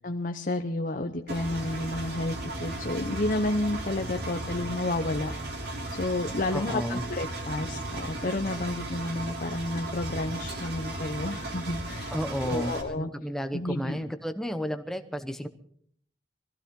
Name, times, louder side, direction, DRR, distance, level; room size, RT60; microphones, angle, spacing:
voice 1, 0.0-5.3 5.6-12.2 12.4-13.1 13.5-14.0, left 2 dB, 50° left, 5 dB, 0.9 m, -31 dB
Engine, 1.3-12.8, right 2 dB, 60° right, 3.3 m, -36 dB
Car, 1.6-6.7, equal, 35° right, 2.3 m, -46 dB
voice 2, 6.5-7.1 12.1-15.5, equal, ahead, 8 dB, 1.0 m, -32 dB
23.0 x 15.5 x 3.8 m, 0.63 s
head